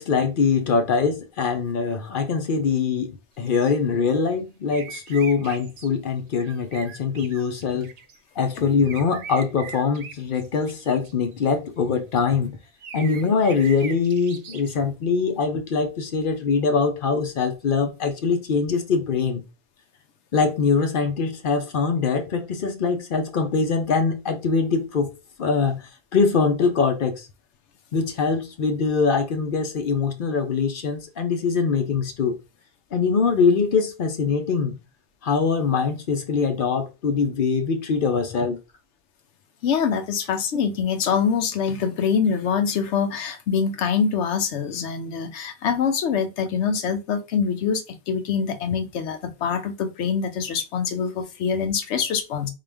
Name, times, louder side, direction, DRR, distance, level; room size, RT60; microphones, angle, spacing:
voice 1, 0.0-7.9 8.4-12.6 12.9-19.4 20.3-25.1 25.4-27.3 27.9-32.3 32.9-34.8 35.2-38.6, left 5 dB, 55° left, 0.7 m, -23 dB
sound 1, 3.4-3.7 4.7-5.9 6.4-8.2 8.8-11.5 12.8-14.7, right 6 dB, 60° right, 0.4 m, -41 dB
voice 2, 39.6-52.5, left 6 dB, 85° left, 1.0 m, -24 dB
3.7 x 2.4 x 3.4 m
omnidirectional pair, 1.1 m